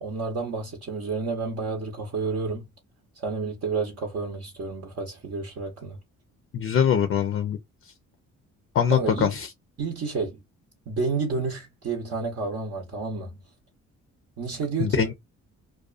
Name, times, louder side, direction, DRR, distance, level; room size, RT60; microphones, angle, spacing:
voice 1, 0.0-2.7 3.1-6.0 8.9-9.4 9.8-10.4 10.9-13.4 14.4-15.1, right 4 dB, 55° right, 0.8 m, -30 dB
voice 2, 6.5-7.6 8.7-9.5 14.8-15.1, left 8 dB, 45° left, 0.4 m, -23 dB
2.4 x 2.2 x 2.4 m
cardioid pair, 90°, 30 cm